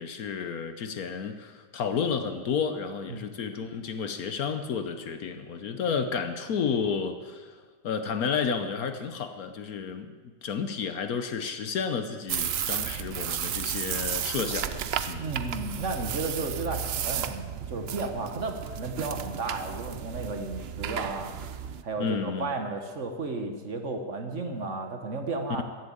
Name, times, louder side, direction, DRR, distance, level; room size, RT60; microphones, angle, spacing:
voice 1, 0.0-15.3 22.0-22.5 25.6-25.7, left 6 dB, 65° left, 9 dB, 1.2 m, -31 dB
sound 1, 12.3-21.8, right 9 dB, 85° right, 0.5 m, -33 dB
voice 2, 15.2-25.6, right 3 dB, 45° right, 5 dB, 1.4 m, -33 dB
15.0 x 7.4 x 8.7 m, 1.4 s
omnidirectional pair, 1.8 m